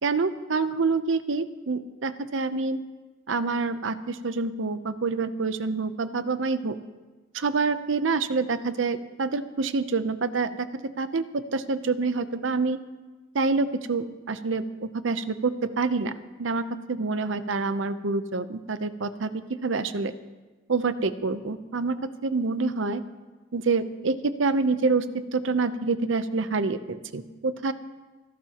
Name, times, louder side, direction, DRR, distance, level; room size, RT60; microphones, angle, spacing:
voice 1, 0.0-2.8 3.3-6.8 7.3-10.7 11.0-12.8 13.3-16.1 16.4-19.3 19.6-20.1 20.7-22.0 22.2-23.0 23.5-25.0 25.3-27.7, right 4 dB, 75° right, 12 dB, 0.7 m, -27 dB
28.5 x 12.0 x 3.0 m, 1.2 s
head